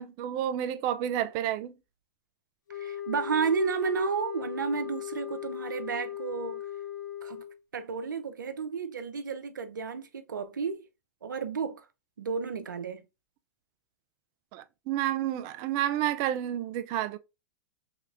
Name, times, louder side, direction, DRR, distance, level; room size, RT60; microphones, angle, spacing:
voice 1, 0.0-1.7 14.5-17.2, right 11 dB, 40° right, 0.4 m, -30 dB
sound 1, 2.7-7.6, left 11 dB, 80° left, 0.7 m, -38 dB
voice 2, 2.7-6.6 7.2-7.4 7.7-10.9 11.2-11.8 12.2-13.0, right 5 dB, 85° right, 0.6 m, -32 dB
3.3 x 2.9 x 2.4 m
hypercardioid pair, 115°, 10 cm